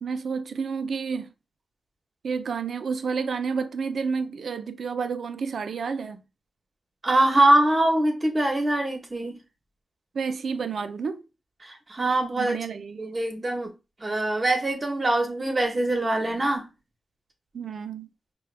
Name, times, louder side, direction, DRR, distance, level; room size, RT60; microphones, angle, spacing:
voice 1, 0.0-1.3 2.2-6.2 10.1-11.2 12.4-13.1 17.5-18.1, right 5 dB, 90° right, 0.4 m, -30 dB
voice 2, 7.0-9.4 11.6-12.6 13.0-13.7 14.0-16.7, right 1 dB, 35° right, 1.1 m, -23 dB
4.8 x 2.2 x 3.3 m
wide cardioid pair, 85°, 0 cm